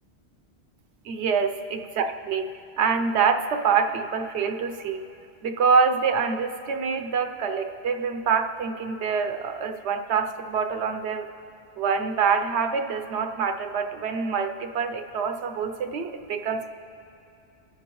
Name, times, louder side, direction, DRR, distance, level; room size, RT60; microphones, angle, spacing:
voice 1, 1.0-2.5 2.8-5.0 5.4-11.3 11.8-16.7, right 5 dB, 80° right, 6 dB, 1.0 m, -25 dB
24.0 x 8.5 x 3.1 m, 2.7 s
omnidirectional pair, 1.1 m